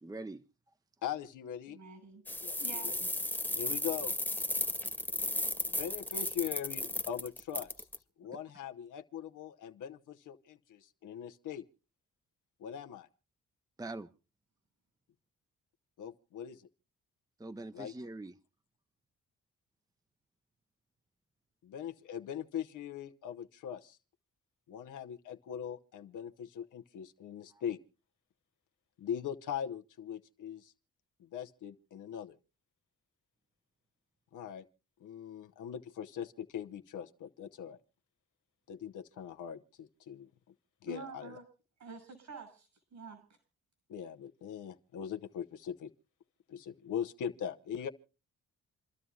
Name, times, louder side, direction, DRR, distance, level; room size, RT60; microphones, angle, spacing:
voice 1, 0.0-0.4 8.3-8.4 13.8-14.1 17.4-18.3 27.5-27.6, right 2 dB, 10° right, 0.7 m, -43 dB
voice 2, 1.0-1.8 2.4-2.9 3.5-4.1 5.6-7.9 8.2-11.6 12.6-13.1 16.0-16.7 17.7-17.9 21.6-24.0 24.7-27.8 29.0-30.7 31.2-32.4 34.3-34.7 35.0-37.8 38.7-40.3 40.8-41.4 43.9-45.9 46.5-47.9, left 9 dB, 80° left, 1.0 m, -41 dB
voice 3, 1.7-2.2 2.6-3.1 40.8-41.4 41.8-43.2, right 5 dB, 70° right, 6.3 m, -48 dB
sound 1, 2.3-8.0, left 1 dB, 5° left, 1.3 m, -35 dB
28.5 x 12.5 x 2.4 m
supercardioid pair, 55°, 30 cm